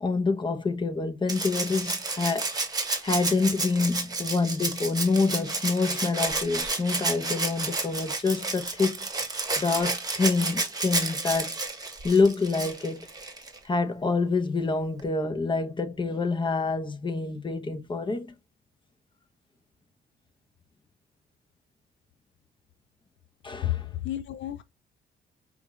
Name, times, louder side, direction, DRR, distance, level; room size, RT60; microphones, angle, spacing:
voice 1, 0.0-2.5 3.0-9.1 9.6-11.5 12.0-13.1 13.6-18.3 23.4-23.9, left 4 dB, 25° left, 0.8 m, -27 dB
Rattle (instrument), 1.3-13.6 15.0-15.1, right 3 dB, 20° right, 1.2 m, -31 dB
voice 2, 23.6-24.6, left 13 dB, 70° left, 0.5 m, -31 dB
5.1 x 2.4 x 3.0 m
cardioid pair, 90°, 20 cm